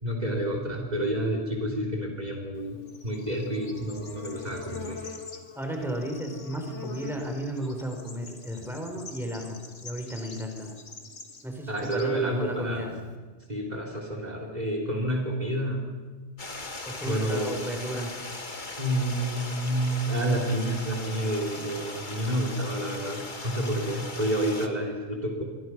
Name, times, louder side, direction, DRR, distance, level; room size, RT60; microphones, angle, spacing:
voice 1, 0.0-5.0 11.7-12.9 13.5-15.8 17.0-17.7 18.8-25.4, right 1 dB, 35° right, 2 dB, 3.8 m, -29 dB
Bird / Insect, 2.6-13.2, left 4 dB, 85° left, 2.5 m, -44 dB
voice 2, 5.6-10.7 11.4-12.9 16.8-18.1, equal, ahead, 2 dB, 4.5 m, -33 dB
Stream, 16.4-24.7, left 3 dB, 40° left, 2.0 m, -38 dB
26.5 x 24.0 x 6.2 m, 1.4 s
omnidirectional pair, 1.2 m